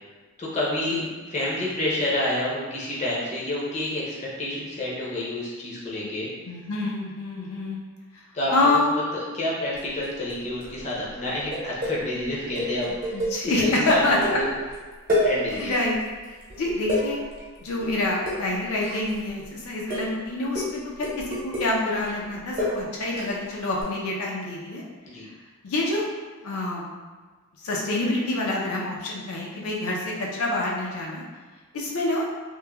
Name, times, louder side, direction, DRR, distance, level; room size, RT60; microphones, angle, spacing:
voice 1, 0.4-1.0 1.3-6.3 8.3-8.8 9.3-13.2 13.6-14.5 15.2-15.8 25.0-25.2, left 1 dB, 30° left, -6 dB, 0.5 m, -28 dB
voice 2, 6.4-7.8 8.1-8.2 8.5-9.0 13.1-14.4 15.2-15.3 15.6-16.0 16.6-17.2 17.6-24.8 25.6-26.0 26.4-26.9 27.6-31.2 31.7-32.2, left 2 dB, 80° left, -3 dB, 0.5 m, -26 dB
sound 1, 9.8-10.4 10.6-11.0 11.2-14.8 15.1-15.9 16.2-19.4 19.9-20.2 20.5-23.4 23.8-23.9, left 1 dB, 40° right, 0.8 m, -29 dB
3.0 x 2.1 x 2.2 m, 1.4 s
head